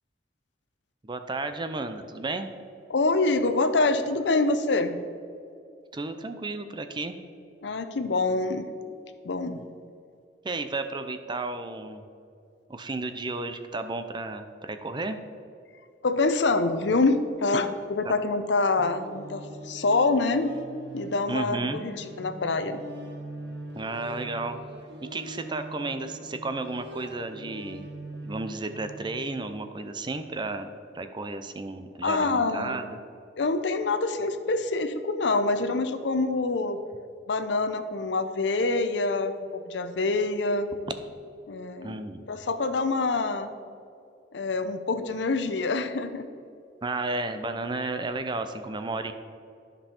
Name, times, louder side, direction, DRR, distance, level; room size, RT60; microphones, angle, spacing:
voice 1, 1.0-2.5 5.9-7.2 10.4-12.1 12.7-15.2 18.0-18.1 21.3-21.8 23.7-24.6 25.0-27.9 28.2-33.0 41.8-42.3 46.8-49.1, right 2 dB, 25° right, 9 dB, 0.5 m, -33 dB
voice 2, 2.9-5.0 7.6-8.7 9.2-9.6 16.0-20.6 20.9-22.8 32.0-32.8 33.4-36.8 37.3-40.7 41.5-42.0 42.3-43.5 44.3-46.2, left 3 dB, 75° left, 9 dB, 0.6 m, -26 dB
sound 1, 18.8-29.4, right 1 dB, 65° right, 1.0 m, -42 dB
12.5 x 5.5 x 4.4 m, 2.5 s
head